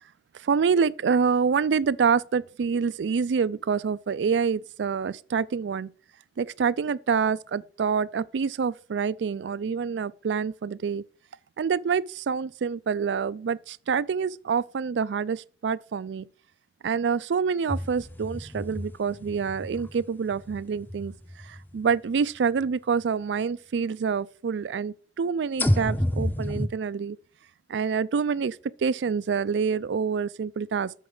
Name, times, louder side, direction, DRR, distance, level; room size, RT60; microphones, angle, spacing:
voice 1, 0.4-5.9 6.4-11.0 11.6-16.3 16.8-21.1 21.4-27.2 27.7-30.9, right 6 dB, 85° right, 0.4 m, -27 dB
sound 1, 17.7-22.0 22.6-22.7 25.6-26.7, equal, 10° left, 0.6 m, -30 dB
8.3 x 5.8 x 3.8 m
head